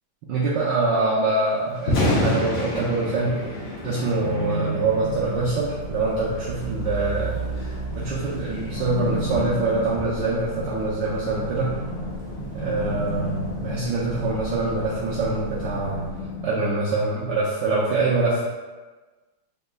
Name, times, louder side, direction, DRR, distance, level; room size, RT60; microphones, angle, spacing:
voice 1, 0.3-3.4 3.8-11.7 12.5-16.0 16.4-18.4, right 3 dB, 70° right, -6 dB, 1.2 m, -25 dB
Thunder, 1.7-15.9, left 1 dB, 55° left, 1.0 m, -32 dB
sound 1, 4.2-16.5, equal, 40° left, 1.6 m, -33 dB
Truck, 5.5-16.3, right 3 dB, 85° left, 0.5 m, -37 dB
5.3 x 2.9 x 2.2 m, 1.3 s
omnidirectional pair, 2.4 m